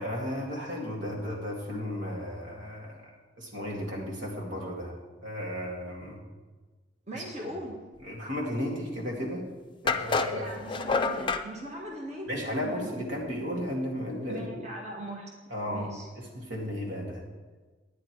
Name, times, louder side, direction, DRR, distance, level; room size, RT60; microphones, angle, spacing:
voice 1, 0.0-6.2 7.1-7.5 8.0-9.4 9.8-10.5 12.3-14.6 15.5-17.2, equal, 75° right, -2 dB, 2.5 m, -34 dB
voice 2, 7.1-7.8 10.3-13.0 14.3-15.3 15.7-16.1, right 1 dB, 35° right, -2 dB, 1.4 m, -39 dB
sound 1, 9.0-9.1 9.9-11.5, left 4 dB, 25° left, 0.5 m, -28 dB
10.5 x 9.6 x 4.7 m, 1.3 s
head